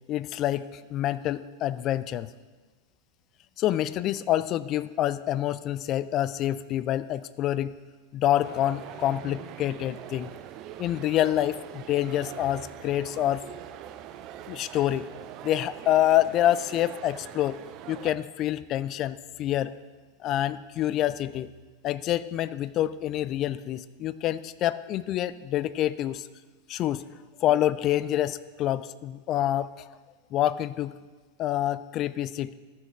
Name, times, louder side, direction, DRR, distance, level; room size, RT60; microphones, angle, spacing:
voice 1, 0.1-2.3 3.6-7.7 8.1-10.3 10.8-13.4 14.5-15.1 15.4-17.6 17.9-19.7 20.2-21.5 21.8-26.3 26.7-27.0 27.4-29.7 30.3-31.0 31.4-32.5, left 12 dB, 35° left, 16 dB, 0.4 m, -27 dB
sound 1, 8.4-18.2, right 11 dB, 35° right, 0.5 m, -43 dB
13.5 x 5.9 x 4.6 m, 1.3 s
figure-of-eight pair, 90°, 0 cm